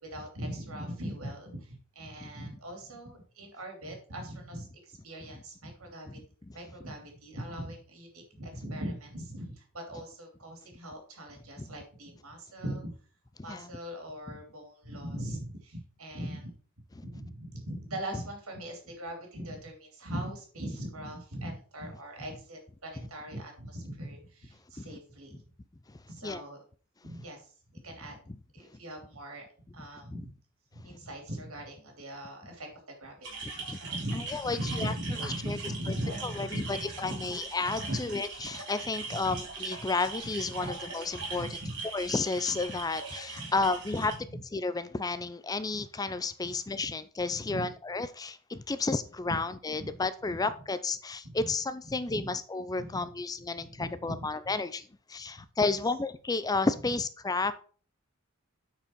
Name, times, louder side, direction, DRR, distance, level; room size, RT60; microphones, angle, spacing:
voice 1, 0.0-6.2 6.5-12.9 13.4-16.5 17.0-25.5 26.1-26.6 27.0-27.5 27.8-28.2 28.5-29.5 29.7-30.3 30.7-37.2 37.7-38.0 39.2-39.4 40.6-40.7 41.2-41.8 43.4-43.5 44.3-44.4 46.4-46.5 47.3-47.7 49.3-49.4 49.8-49.9 51.2-51.5 51.9-52.2 52.8-53.0 53.7-54.3 55.6-55.7, right 1 dB, 90° right, 3 dB, 3.0 m, -40 dB
voice 2, 6.2-6.6 11.6-11.7 13.5-13.7 14.3-14.4 17.0-17.1 24.8-24.9 25.9-26.4 28.3-28.4 33.4-33.8 34.1-34.9 35.2-35.6 35.9-36.0 36.2-41.6 41.9-44.1 44.5-57.5, left 3 dB, 15° left, 13 dB, 0.4 m, -32 dB
sound 1, 33.2-44.1, right 4 dB, 55° right, 3.0 m, -41 dB
8.8 x 4.8 x 4.5 m, 0.41 s
head